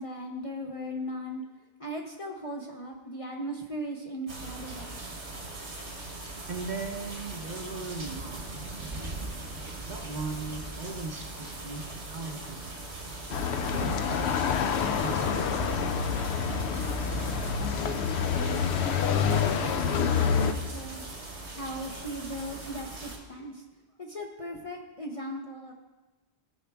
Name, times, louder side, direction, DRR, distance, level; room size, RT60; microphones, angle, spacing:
voice 1, 0.0-1.4 1.8-5.0 19.1-21.0 21.5-23.6 24.0-25.7, equal, 35° left, 1 dB, 0.6 m, -38 dB
sound 1, 4.3-23.2, right 2 dB, 80° right, 1.8 m, -40 dB
voice 2, 6.5-8.5 9.9-12.7 13.7-14.3 15.0-15.8, right 4 dB, 45° right, 3 dB, 0.8 m, -38 dB
sound 2, 13.3-20.5, left 6 dB, 70° left, 0.8 m, -27 dB
15.0 x 5.0 x 3.4 m, 1.2 s
omnidirectional pair, 1.1 m